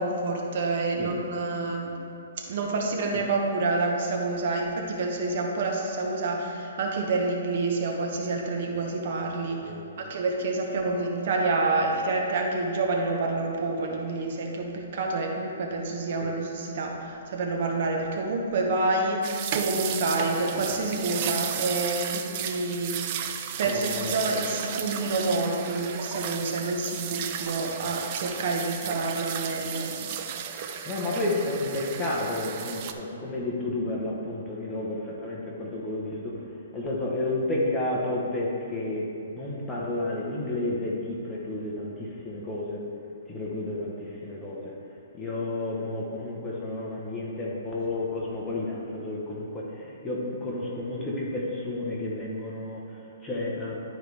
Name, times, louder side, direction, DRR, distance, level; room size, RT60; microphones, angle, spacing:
voice 1, 0.0-1.9 2.4-9.6 10.0-23.1 23.6-29.9, right 3 dB, 50° right, 0 dB, 1.1 m, -28 dB
voice 2, 9.6-10.1 16.2-16.3 23.6-24.5 30.9-36.3 36.7-42.8 43.3-44.7 45.1-52.8 53.2-53.8, left 2 dB, 10° left, -5 dB, 1.1 m, -31 dB
sound 1, 19.2-32.9, right 8 dB, 35° right, 0.5 m, -34 dB
11.5 x 4.8 x 3.5 m, 2.7 s
hypercardioid pair, 160°, 0 cm